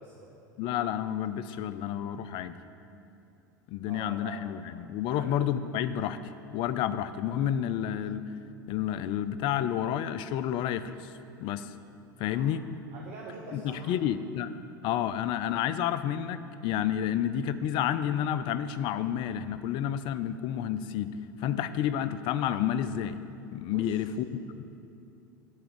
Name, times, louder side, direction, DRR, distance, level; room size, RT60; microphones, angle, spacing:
voice 1, 0.0-0.4 3.9-4.4 5.1-5.3 12.3-12.5 12.9-14.0 23.7-24.0 24.4-24.6, right 3 dB, 60° right, -1 dB, 0.8 m, -45 dB
voice 2, 0.6-2.6 3.7-6.2 6.5-8.3 8.7-11.1 11.4-11.7 12.2-12.6 13.5-14.5 14.8-21.1 21.4-23.2 23.5-24.6, left 10 dB, 50° left, 13 dB, 0.4 m, -30 dB
8.6 x 3.5 x 6.7 m, 2.8 s
hypercardioid pair, 80°, 11 cm